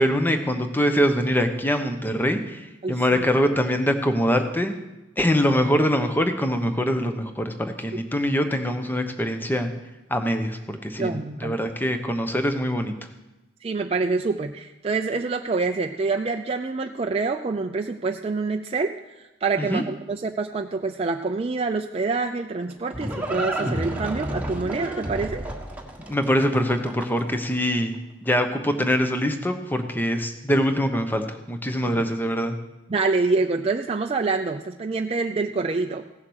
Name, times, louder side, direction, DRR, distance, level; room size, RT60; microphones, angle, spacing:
voice 1, 0.0-4.7 5.2-9.7 10.1-12.9 19.6-19.8 26.1-32.6, equal, 10° left, 7 dB, 1.0 m, -23 dB
voice 2, 2.8-3.3 7.9-8.0 11.0-11.6 13.6-25.4 31.8-32.0 32.9-36.0, right 3 dB, 30° right, 4 dB, 0.4 m, -26 dB
Livestock farm animals working animals, 22.3-27.4, right 1 dB, 10° right, 1.4 m, -31 dB
16.0 x 7.5 x 6.3 m, 1.0 s
head